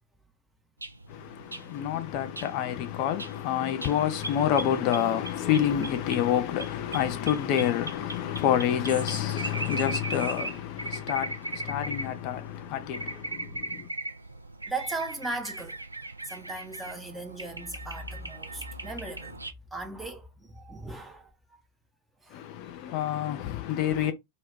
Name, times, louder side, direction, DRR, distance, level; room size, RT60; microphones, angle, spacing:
sound 1, 0.8-19.5, right 2 dB, 85° right, 0.3 m, -39 dB
voice 1, 1.1-13.9 22.3-24.1, left 10 dB, 45° left, 0.4 m, -28 dB
voice 2, 14.7-15.8 16.2-19.4 19.7-21.6 22.2-22.4, right 2 dB, 5° right, 0.5 m, -37 dB
2.1 x 2.1 x 3.5 m
figure-of-eight pair, 90°, 0 cm